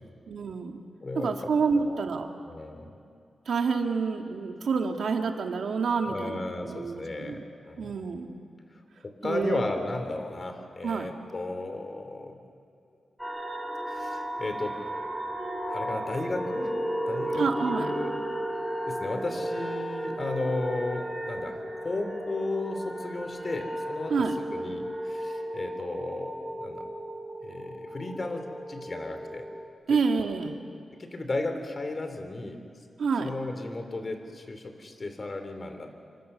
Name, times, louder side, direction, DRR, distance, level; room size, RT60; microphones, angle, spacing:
voice 1, 0.3-0.8 1.2-2.3 3.5-7.4 7.8-8.3 9.2-9.6 10.8-11.1 17.3-17.9 24.1-24.4 29.9-30.6 33.0-33.3, right 5 dB, 75° right, 4 dB, 2.2 m, -28 dB
voice 2, 1.0-1.4 1.7-2.0 2.5-3.0 6.0-7.9 9.0-12.4 13.9-14.8 15.7-16.7 17.1-18.1 18.8-21.6 21.8-24.1 24.5-26.9 27.4-29.4 29.9-30.0 30.9-32.6 33.2-36.0, left 2 dB, 35° left, 6 dB, 3.1 m, -34 dB
sound 1, 13.2-29.7, right 1 dB, 5° right, 4.7 m, -34 dB
28.0 x 25.0 x 6.8 m, 2.4 s
wide cardioid pair, 120°, 0 cm